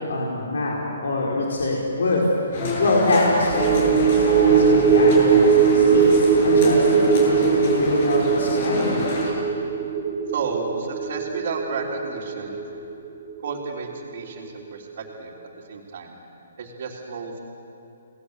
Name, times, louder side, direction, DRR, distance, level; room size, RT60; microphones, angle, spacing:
voice 1, 0.1-2.2 2.8-9.1, left 2 dB, 80° left, -3 dB, 5.2 m, -24 dB
sound 1, 2.5-9.3, left 2 dB, 45° left, 7.8 m, -28 dB
sound 2, 3.5-14.1 14.4-14.6, right 6 dB, 15° right, 1.4 m, -20 dB
voice 2, 10.3-12.6 13.4-15.3 15.7-16.2 16.6-17.4, right 4 dB, 50° right, -6 dB, 3.6 m, -32 dB
30.0 x 20.0 x 8.3 m, 2.8 s
hypercardioid pair, 165°, 0 cm